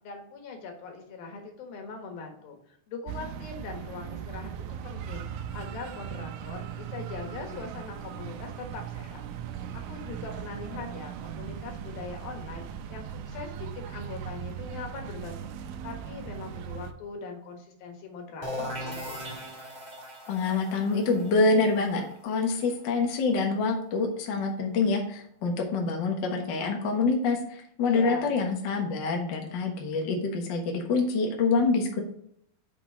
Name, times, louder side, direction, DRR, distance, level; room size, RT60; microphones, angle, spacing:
voice 1, 0.0-9.2 9.9-15.5 15.8-19.0 27.8-28.4, left 4 dB, 85° left, 3 dB, 3.3 m, -41 dB
sound 1, 3.1-16.9, right 9 dB, 80° right, 2.1 m, -39 dB
sound 2, 18.4-24.0, equal, 20° right, 1.0 m, -40 dB
voice 2, 20.3-32.0, left 3 dB, 55° left, 1 dB, 1.3 m, -26 dB
6.4 x 6.0 x 4.9 m, 0.70 s
omnidirectional pair, 4.0 m